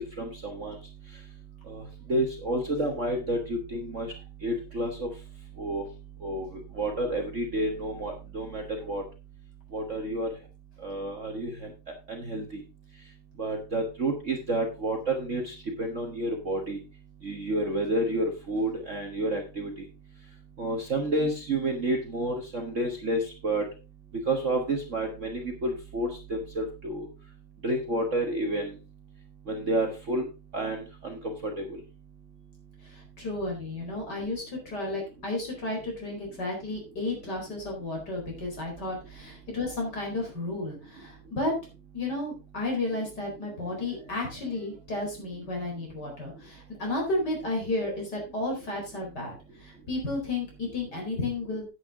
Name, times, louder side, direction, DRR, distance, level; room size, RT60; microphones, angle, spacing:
voice 1, 0.2-0.8 1.7-1.8 2.1-4.1 4.4-5.1 5.6-5.8 6.2-9.0 9.7-10.3 10.8-11.5 12.1-12.4 13.4-16.8 17.2-19.7 20.6-23.6 24.3-27.1 27.6-28.7 29.5-30.2 30.5-31.6, right 1 dB, 40° right, 2 dB, 1.5 m, -30 dB
voice 2, 32.9-41.5 41.9-49.3 49.6-51.7, left 2 dB, 50° left, 0 dB, 5.0 m, -32 dB
9.8 x 9.1 x 3.7 m, 0.29 s
omnidirectional pair, 2.4 m